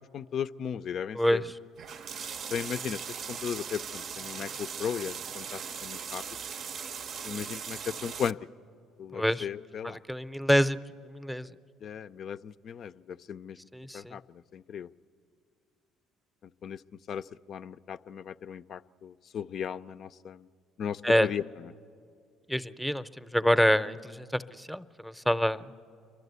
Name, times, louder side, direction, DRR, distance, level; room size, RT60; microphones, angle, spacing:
voice 1, 0.1-1.4 2.5-3.0 3.3-6.2 7.2-8.4 9.0-10.0 11.8-13.6 13.9-14.9 16.6-16.8 17.1-17.2 17.5-20.5 20.8-21.4, left 8 dB, 55° left, 13 dB, 0.4 m, -36 dB
voice 2, 1.1-1.6 9.1-9.5 9.8-11.5 13.7-14.2 21.0-21.3 22.5-25.7, equal, ahead, 13 dB, 0.6 m, -27 dB
sound 1, 1.8-8.3, right 6 dB, 55° right, 0.6 m, -39 dB
29.0 x 12.0 x 8.2 m, 2.3 s
hypercardioid pair, 65°, 0 cm